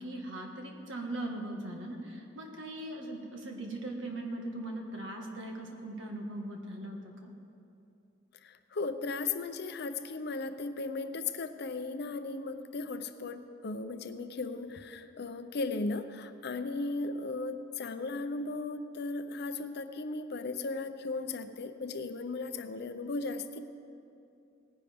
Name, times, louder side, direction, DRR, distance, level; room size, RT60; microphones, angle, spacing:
voice 1, 0.0-7.3, right 1 dB, 80° right, 1 dB, 1.6 m, -40 dB
voice 2, 8.4-23.6, left 3 dB, 60° left, 10 dB, 0.6 m, -36 dB
18.0 x 10.0 x 3.5 m, 2.6 s
head